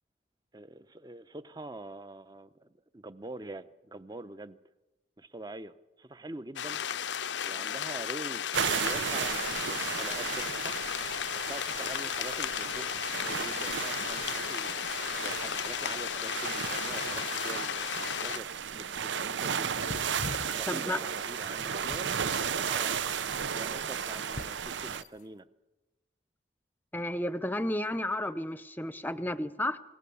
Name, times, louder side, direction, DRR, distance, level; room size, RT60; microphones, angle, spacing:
voice 1, 0.5-4.6 5.2-6.8 7.4-10.7 11.5-12.9 13.2-19.8 20.5-23.2 23.5-25.5, right 2 dB, 20° right, 0.7 m, -45 dB
sound 1, 6.6-18.4, left 9 dB, 85° left, 0.6 m, -34 dB
sound 2, 8.5-25.0, right 7 dB, 85° right, 0.7 m, -34 dB
sound 3, 19.4-25.2, left 3 dB, 45° left, 0.6 m, -44 dB
voice 2, 20.7-21.0 26.9-29.8, left 1 dB, 10° left, 0.7 m, -32 dB
27.5 x 17.5 x 7.0 m
head